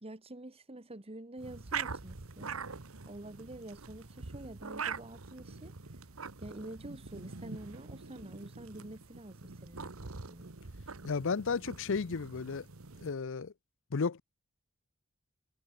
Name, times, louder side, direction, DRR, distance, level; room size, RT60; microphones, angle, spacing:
voice 1, 0.0-2.6 3.1-5.8 6.4-10.5, right 1 dB, 30° right, 1.6 m, -47 dB
sound 1, 1.4-13.1, right 5 dB, 70° right, 1.5 m, -44 dB
voice 2, 11.0-12.7 13.0-13.5 13.9-14.2, left 5 dB, 65° left, 0.6 m, -33 dB
head